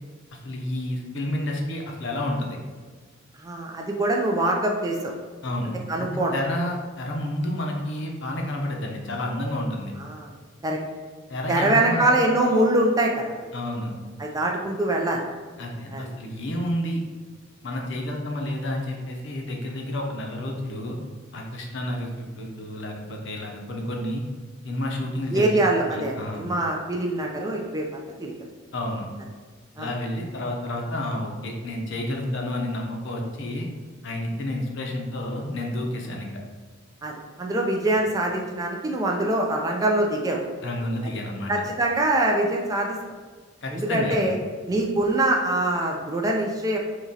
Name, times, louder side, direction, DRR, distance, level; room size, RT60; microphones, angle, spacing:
voice 1, 0.4-2.6 5.4-5.7 6.0-9.9 11.3-12.1 13.5-13.9 15.6-17.0 17.6-21.0 21.3-24.2 24.6-26.5 28.7-29.1 29.8-33.7 34.0-36.3 40.6-41.5 43.6-44.3, left 1 dB, 60° left, 0 dB, 0.6 m, -30 dB
voice 2, 3.4-5.1 5.9-6.3 10.0-10.3 10.6-10.8 11.5-13.5 14.2-15.2 15.9-16.1 25.3-28.3 29.8-29.9 37.0-37.1 37.4-40.4 41.5-43.0 43.7-44.4 44.7-46.8, right 1 dB, 20° right, 1 dB, 0.3 m, -24 dB
3.6 x 2.9 x 2.8 m, 1.5 s
head